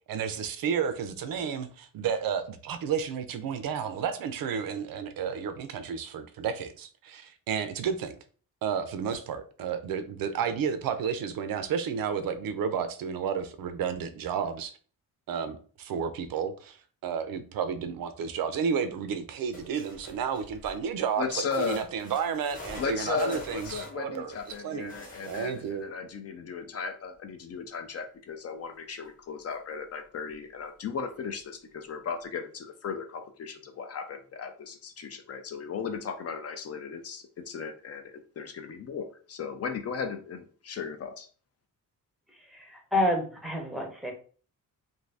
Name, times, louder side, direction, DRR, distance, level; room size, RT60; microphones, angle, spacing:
voice 1, 0.1-8.1 8.6-14.7 15.3-16.8 17.0-24.9 25.2-25.9, right 7 dB, 75° right, 0.5 m, -32 dB
sound 1, 19.5-20.9 21.5-25.8 29.0-29.1 29.5-29.6 30.3-30.4, left 1 dB, 25° left, 1.0 m, -46 dB
voice 2, 21.2-21.8 22.8-38.0 38.4-41.3, left 5 dB, 45° left, 0.4 m, -36 dB
voice 3, 42.5-44.1, left 1 dB, ahead, 0.6 m, -29 dB
2.6 x 2.6 x 3.2 m
wide cardioid pair, 175°, 35 cm